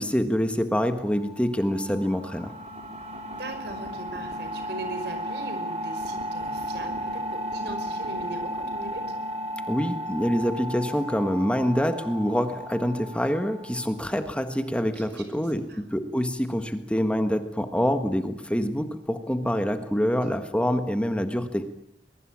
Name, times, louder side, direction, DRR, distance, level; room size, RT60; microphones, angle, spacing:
voice 1, 0.0-2.5 9.7-15.6 15.9-21.7, equal, 5° left, 7 dB, 1.5 m, -26 dB
sound 1, 1.0-14.4, equal, 40° right, 4.9 m, -34 dB
voice 2, 3.4-9.1 14.7-15.9, right 2 dB, 65° right, 8 dB, 5.6 m, -39 dB
23.0 x 22.0 x 8.7 m, 0.79 s
head